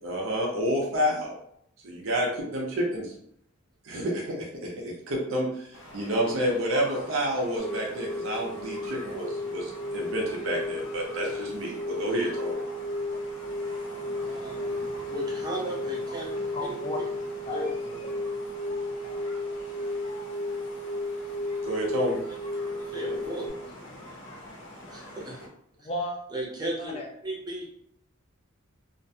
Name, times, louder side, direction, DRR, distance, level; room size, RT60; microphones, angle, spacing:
voice 1, 0.0-1.4 1.8-3.1 3.8-12.6 21.6-22.2, equal, 75° right, -2 dB, 0.6 m, -29 dB
sound 1, 5.7-25.5, left 1 dB, 65° left, 0.7 m, -45 dB
sound 2, 7.6-23.5, left 1 dB, 5° left, 0.9 m, -34 dB
voice 2, 14.2-14.8 15.1-16.3 16.6-16.7 17.5-17.7 22.9-23.5 24.9-25.5 26.3-27.0 27.2-27.6, right 1 dB, 20° right, -3 dB, 0.6 m, -35 dB
voice 3, 16.5-17.0 17.5-18.3 19.0-19.3 25.8-26.2 26.8-27.1, left 1 dB, 30° left, 2 dB, 0.4 m, -36 dB
2.4 x 2.2 x 2.6 m, 0.71 s
head